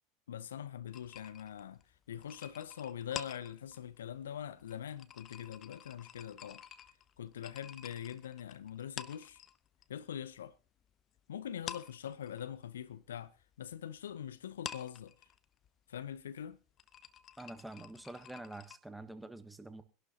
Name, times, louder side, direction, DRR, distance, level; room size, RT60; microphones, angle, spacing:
voice 1, 0.3-1.8 2.1-6.6 7.2-9.4 9.9-10.6 11.3-13.3 13.6-15.2 15.9-16.6, left 9 dB, 75° left, 0.5 m, -43 dB
sound 1, 0.9-9.9 10.2-11.2 11.5-18.8, left 10 dB, 40° left, 0.8 m, -49 dB
voice 2, 17.4-19.8, right 2 dB, 5° right, 1.3 m, -47 dB
23.5 x 11.5 x 2.9 m
figure-of-eight pair, 80°, 0 cm